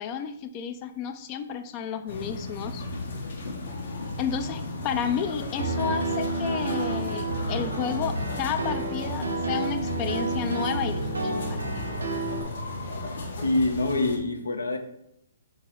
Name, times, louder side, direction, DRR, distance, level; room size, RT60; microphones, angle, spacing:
voice 1, 0.0-2.8 4.2-11.6, left 7 dB, 30° left, 9 dB, 0.3 m, -32 dB
sound 1, 2.1-14.2, left 2 dB, 65° left, 1.0 m, -35 dB
Piano, 5.6-12.4, right 2 dB, 85° right, 0.9 m, -30 dB
voice 2, 13.4-14.8, left 2 dB, 80° left, 5 dB, 0.6 m, -25 dB
3.9 x 2.8 x 4.6 m, 0.78 s
figure-of-eight pair, 130°, 0 cm